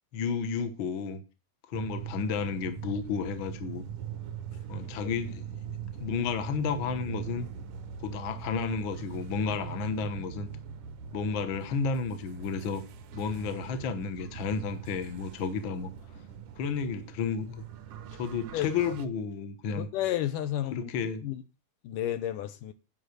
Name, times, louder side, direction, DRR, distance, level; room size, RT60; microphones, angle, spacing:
voice 1, 0.1-1.2 1.7-3.8 4.7-5.5 6.0-7.5 8.0-10.5 11.1-12.8 13.1-15.9 16.6-17.6 18.2-19.9 20.7-21.2, left 5 dB, 60° left, 1.3 m, -32 dB
sound 1, 1.7-19.1, right 8 dB, 80° right, 1.3 m, -42 dB
voice 2, 19.8-20.9 21.2-21.4 21.8-22.7, left 12 dB, 75° left, 2.3 m, -31 dB
10.0 x 5.5 x 8.0 m
omnidirectional pair, 4.0 m